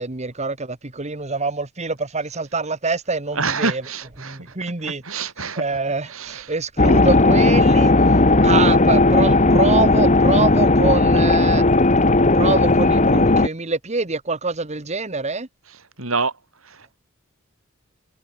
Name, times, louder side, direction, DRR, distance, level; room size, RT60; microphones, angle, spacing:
voice 1, 0.0-3.8 4.2-7.9 8.4-11.6 12.3-15.5, right 3 dB, 30° right, 1.6 m, -25 dB
voice 2, 3.3-4.5 4.8-5.7 6.1-6.5 16.0-16.3 16.7-17.0, right 4 dB, 70° right, 7.1 m, -27 dB
sound 1, 6.8-13.5, left 2 dB, 35° left, 1.7 m, -15 dB
head